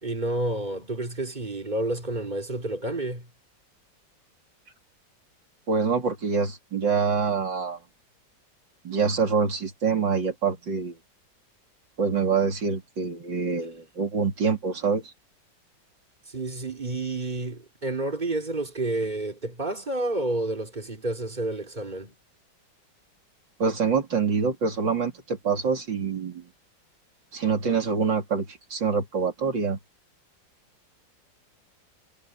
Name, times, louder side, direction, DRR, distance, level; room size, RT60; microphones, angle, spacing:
voice 1, 0.0-3.3 16.3-22.1, right 2 dB, 25° right, 4.1 m, -30 dB
voice 2, 5.7-7.8 8.8-11.0 12.0-15.1 23.6-26.5 27.3-29.8, right 5 dB, 75° right, 3.9 m, -25 dB
omnidirectional pair, 2.0 m